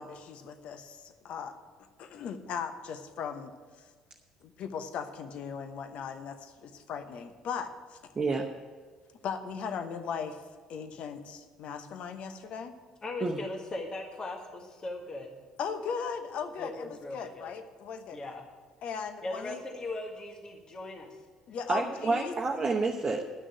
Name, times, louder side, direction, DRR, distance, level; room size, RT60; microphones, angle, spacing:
voice 1, 0.0-1.6 2.0-3.5 4.4-8.1 9.2-10.4 10.7-12.8 15.6-18.2 18.8-19.6 21.5-22.3, left 6 dB, 55° left, 8 dB, 0.9 m, -38 dB
voice 2, 8.2-8.5 13.2-13.4 21.7-23.2, right 3 dB, 30° right, 0 dB, 1.0 m, -29 dB
voice 3, 13.0-15.3 16.6-17.5 18.1-18.5 19.2-21.2, left 2 dB, 35° left, 3 dB, 1.6 m, -39 dB
11.0 x 6.3 x 9.1 m, 1.5 s
hypercardioid pair, 55°, 2 cm